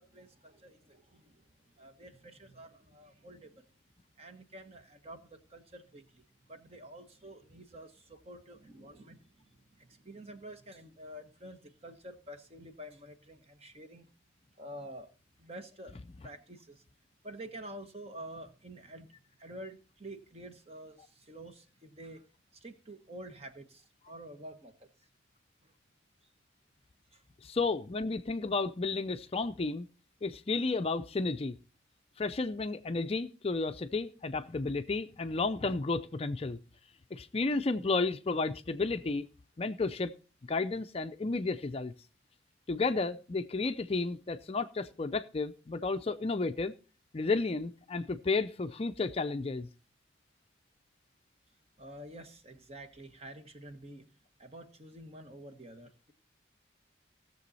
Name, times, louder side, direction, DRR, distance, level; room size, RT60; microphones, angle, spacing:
voice 1, 0.0-3.7 4.2-14.1 14.6-15.1 15.4-16.8 17.2-19.1 19.4-22.3 22.5-24.9 25.6-25.7 27.1-27.2 51.8-54.1 54.4-56.1, right 1 dB, 35° right, 1.2 m, -49 dB
voice 2, 27.4-29.9 30.2-31.6 32.2-36.6 37.1-39.2 39.6-40.1 40.5-41.9 42.7-46.7 47.1-49.7, left 3 dB, 30° left, 0.5 m, -32 dB
17.0 x 6.9 x 4.1 m
head